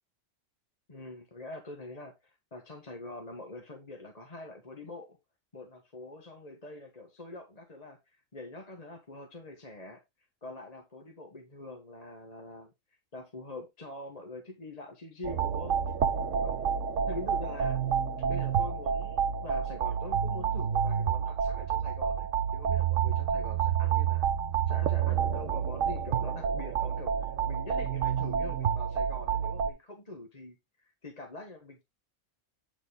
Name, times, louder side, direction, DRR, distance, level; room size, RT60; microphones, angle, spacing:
voice 1, 0.9-5.2 5.5-8.0 8.3-10.0 10.4-12.7 13.1-15.8 16.4-16.7 17.1-17.8 18.2-24.3 24.7-31.8, left 2 dB, 30° left, 1.5 m, -44 dB
sound 1, 15.2-29.7, right 8 dB, 80° right, 1.3 m, -29 dB
9.0 x 4.6 x 3.5 m
omnidirectional pair, 1.3 m